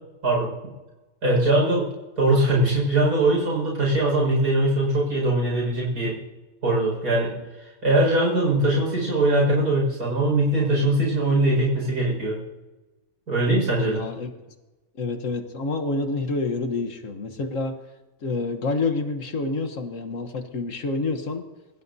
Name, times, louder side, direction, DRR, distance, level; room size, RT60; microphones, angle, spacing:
voice 1, 1.2-1.9 2.2-6.2 6.6-7.4 7.8-12.4 13.3-14.0, right 1 dB, 85° right, -3 dB, 6.1 m, -21 dB
voice 2, 13.8-14.3 15.0-17.7 18.2-21.4, left 3 dB, 60° left, 7 dB, 1.5 m, -28 dB
26.0 x 15.5 x 2.7 m, 1.1 s
omnidirectional pair, 1.6 m